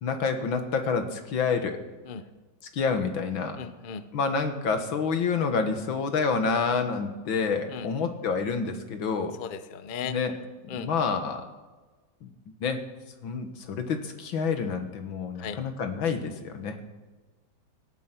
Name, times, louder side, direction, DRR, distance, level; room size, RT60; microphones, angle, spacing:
voice 1, 0.0-1.8 2.7-3.6 4.1-9.4 10.0-10.4 10.6-11.4 12.2-12.3 12.6-12.8 13.2-16.8, left 5 dB, 75° left, 7 dB, 2.2 m, -28 dB
voice 2, 3.6-4.0 7.7-7.9 9.4-10.1 10.7-10.9 15.4-15.6, left 7 dB, 60° left, 11 dB, 0.5 m, -36 dB
18.0 x 12.5 x 6.0 m, 1.3 s
omnidirectional pair, 2.2 m